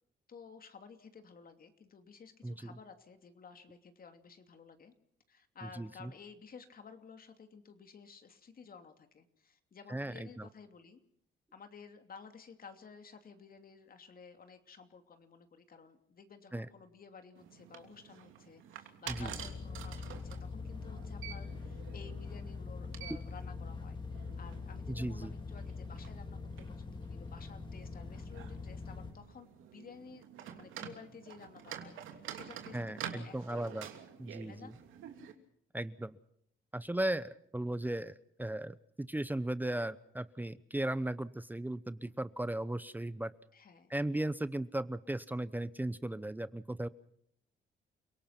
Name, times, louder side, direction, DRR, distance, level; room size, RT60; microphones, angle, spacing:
voice 1, 0.3-4.9 5.3-11.0 11.5-33.7 34.5-34.7 43.5-43.9, left 5 dB, 45° left, 7 dB, 2.8 m, -54 dB
voice 2, 5.8-6.1 9.9-10.5 16.5-16.7 19.1-19.3 24.9-25.3 32.7-33.9 34.2-34.7 35.7-36.2 36.7-43.3 43.9-46.9, right 1 dB, 10° right, 15 dB, 0.8 m, -36 dB
sound 1, 17.3-35.3, right 9 dB, 85° right, 3.0 m, -49 dB
sound 2, 19.1-29.1, left 4 dB, 25° left, 3.6 m, -43 dB
30.0 x 18.0 x 6.0 m, 0.68 s
cardioid pair, 90°, 20 cm